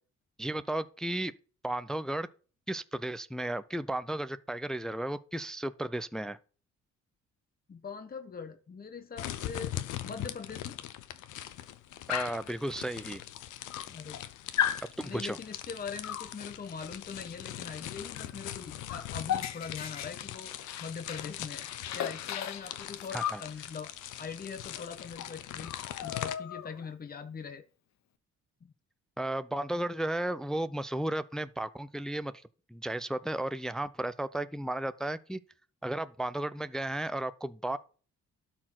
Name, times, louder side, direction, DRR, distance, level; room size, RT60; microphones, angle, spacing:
voice 1, 0.4-1.3 1.6-2.3 2.7-6.4 12.1-13.2 15.0-15.4 23.1-23.4 29.2-32.3 32.7-35.4 35.8-37.8, right 1 dB, ahead, 0.4 m, -34 dB
voice 2, 7.7-9.8 10.0-10.8 13.9-14.2 15.0-20.5 20.8-21.7 21.9-23.9 24.2-25.7 26.0-27.6 28.6-28.7, left 5 dB, 30° left, 1.1 m, -42 dB
sound 1, 9.2-26.3, left 12 dB, 90° left, 0.9 m, -41 dB
Dog, 12.1-12.5 13.4-13.5 13.7-14.2 14.6-14.9 16.0-16.3 18.2-18.3 18.6-21.3 21.6-23.5 24.8-24.9 25.2-25.3 25.6-26.9, left 9 dB, 65° left, 0.9 m, -35 dB
12.0 x 4.5 x 5.9 m
cardioid pair, 90°, 30 cm